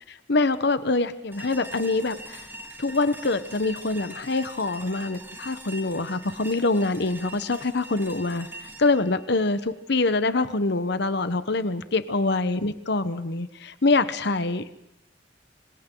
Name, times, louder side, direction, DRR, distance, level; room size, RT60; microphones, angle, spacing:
voice 1, 0.1-2.5 2.8-8.5 8.8-14.6, left 3 dB, 65° left, 12 dB, 1.1 m, -25 dB
sound 1, 1.3-10.4, right 1 dB, 10° right, 3.2 m, -43 dB
26.5 x 26.5 x 3.9 m, 0.84 s
head